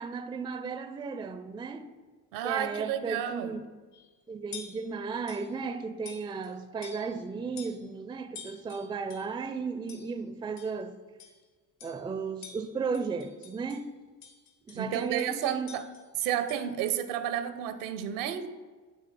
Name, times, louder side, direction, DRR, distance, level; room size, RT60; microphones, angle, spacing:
voice 1, 0.0-1.9 2.4-3.6 4.3-11.0 11.8-13.9 14.7-15.8, right 5 dB, 10° right, 0.4 m, -35 dB
voice 2, 2.3-3.6 14.7-15.9 16.2-18.5, right 10 dB, 70° right, 0.7 m, -31 dB
sound 1, 3.9-4.1 4.5-4.9 5.3-5.5 6.0-6.5 6.8-7.2 7.6-7.9 8.3-9.4 9.9-10.2 10.6-10.8 11.2-11.4 11.8-12.1 12.4-13.8 14.2-16.7, left 6 dB, 75° left, 1.4 m, -49 dB
9.4 x 3.7 x 4.9 m
figure-of-eight pair, 50°, 48 cm